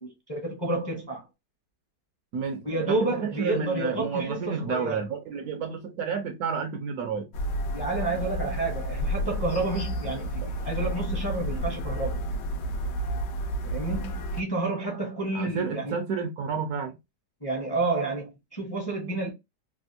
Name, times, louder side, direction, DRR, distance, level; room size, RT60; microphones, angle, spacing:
voice 1, 0.0-1.2 2.6-5.0 7.7-12.2 13.6-15.9 17.4-19.3, right 2 dB, 20° left, 0.6 m, -30 dB
voice 2, 2.3-7.3 11.5-11.6 15.3-17.0, right 6 dB, 70° right, 1.0 m, -31 dB
sound 1, 7.3-14.4, right 1 dB, 80° left, 1.2 m, -31 dB
3.4 x 2.4 x 2.6 m
omnidirectional pair, 1.9 m